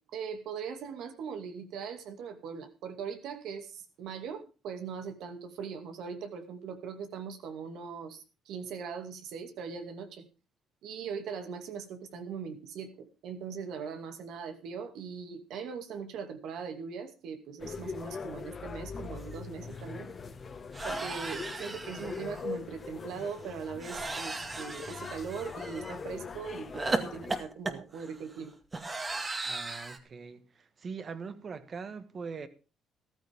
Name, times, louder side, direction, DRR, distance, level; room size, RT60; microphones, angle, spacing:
voice 1, 0.1-10.3 10.8-20.1 20.8-28.5, right 6 dB, 75° right, 2.4 m, -40 dB
sound 1, 17.6-27.4, left 5 dB, 40° left, 1.7 m, -42 dB
sound 2, 19.3-19.4 19.7-19.9 20.7-22.4 23.8-26.0 26.7-30.0, right 2 dB, 25° right, 2.1 m, -36 dB
voice 2, 29.4-32.5, right 5 dB, 45° right, 1.7 m, -42 dB
14.5 x 13.5 x 3.6 m
supercardioid pair, 75°, 0 cm